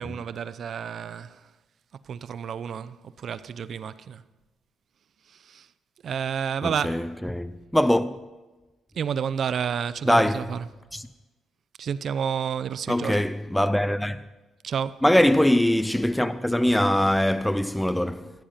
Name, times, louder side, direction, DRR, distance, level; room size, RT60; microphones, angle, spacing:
voice 1, 0.0-1.5 2.0-4.2 5.3-5.7 6.0-7.1 8.9-10.7 11.8-13.2 14.6-15.0, right 7 dB, 55° right, 0.7 m, -30 dB
voice 2, 6.6-8.2 10.1-10.5 10.9-11.0 12.9-14.2 15.0-18.3, left 1 dB, 5° left, 0.5 m, -22 dB
15.5 x 14.0 x 5.7 m
cardioid pair, 110°, 0 cm